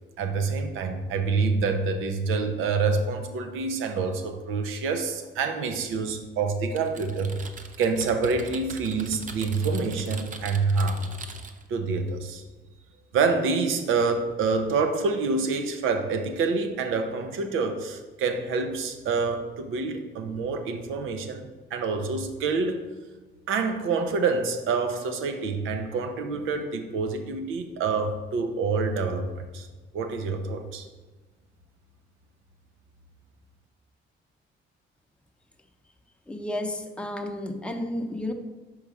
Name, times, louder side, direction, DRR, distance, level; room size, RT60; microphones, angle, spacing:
voice 1, 0.2-7.4 7.8-11.0 11.7-12.4 13.1-22.9 23.5-29.7 29.9-30.8, right 4 dB, 85° right, 6 dB, 0.8 m, -27 dB
Typing, 6.8-11.7, right 4 dB, 40° right, 0.7 m, -41 dB
voice 2, 36.3-38.3, left 1 dB, 5° left, 3 dB, 0.8 m, -32 dB
5.5 x 4.8 x 4.8 m, 1.3 s
cardioid pair, 90°, 20 cm